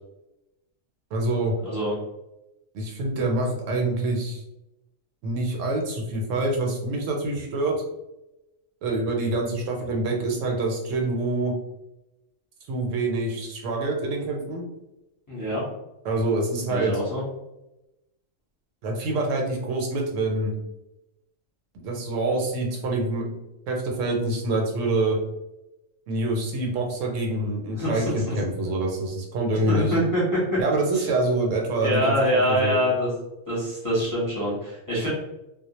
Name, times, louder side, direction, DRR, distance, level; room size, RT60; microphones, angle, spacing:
voice 1, 1.1-1.5 2.7-4.4 5.2-7.7 8.8-11.5 12.7-14.6 16.0-17.0 18.8-20.5 21.7-23.2 23.7-25.2 26.1-29.9 30.6-32.8, right 2 dB, 75° right, 0 dB, 0.9 m, -26 dB
voice 2, 1.6-1.9 15.3-15.6 16.7-17.2 27.7-28.4 29.7-30.4 31.8-33.1 33.5-35.1, equal, 15° left, -8 dB, 0.9 m, -25 dB
2.2 x 2.1 x 2.9 m, 0.94 s
omnidirectional pair, 1.3 m